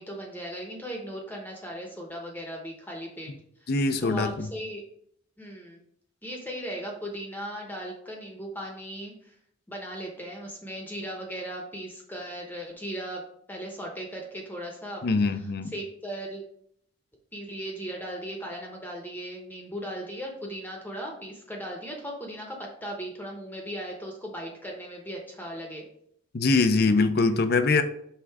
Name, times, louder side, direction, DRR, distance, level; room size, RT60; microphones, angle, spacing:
voice 1, 0.0-3.3 3.6-3.7 4.0-4.8 5.4-5.8 6.2-9.3 9.7-13.2 13.5-15.1 15.7-16.4 17.3-25.9, equal, 10° left, 0 dB, 0.9 m, -37 dB
voice 2, 3.7-4.5 15.0-15.7 26.3-27.8, left 3 dB, 55° left, 10 dB, 0.5 m, -23 dB
5.6 x 3.7 x 4.7 m, 0.69 s
head